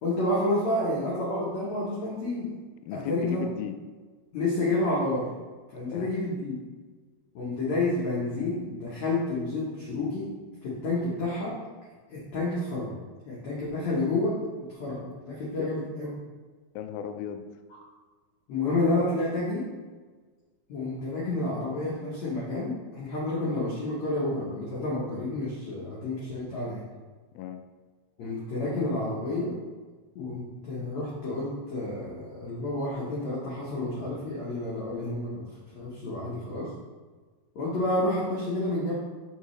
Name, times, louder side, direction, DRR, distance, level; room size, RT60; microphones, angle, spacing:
voice 1, 0.0-2.5 2.9-3.4 4.3-5.3 5.7-6.5 7.3-10.3 10.6-11.6 12.1-13.0 13.2-14.4 14.7-16.1 18.5-19.7 20.7-26.8 28.2-29.5 30.2-35.4 35.8-36.7 37.6-38.9, left 2 dB, 65° left, -7 dB, 1.8 m, -29 dB
voice 2, 2.8-3.8 5.9-6.1 15.6-15.7 16.8-17.5 27.3-27.6, left 9 dB, 85° left, 8 dB, 2.1 m, -35 dB
6.7 x 5.5 x 3.2 m, 1.4 s
omnidirectional pair, 4.5 m